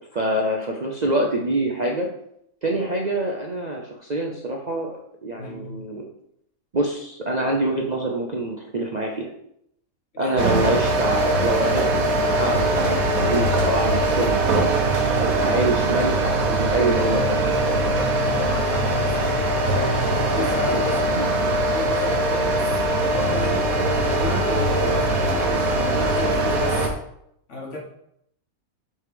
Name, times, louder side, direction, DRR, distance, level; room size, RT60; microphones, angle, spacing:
voice 1, 0.1-2.1 2.6-5.0 5.2-6.0 6.7-9.3 10.2-11.9 12.4-12.7 13.2-14.8 15.2-17.4 20.7-20.8 21.2-21.3, right 1 dB, 40° right, 0 dB, 0.6 m, -25 dB
voice 2, 5.4-5.9 10.1-10.5 18.2-26.9 27.5-27.8, left 1 dB, 60° left, -1 dB, 1.8 m, -34 dB
sound 1, 10.4-26.9, right 1 dB, 90° right, 1.4 m, -21 dB
7.4 x 3.4 x 5.0 m, 0.75 s
omnidirectional pair, 1.4 m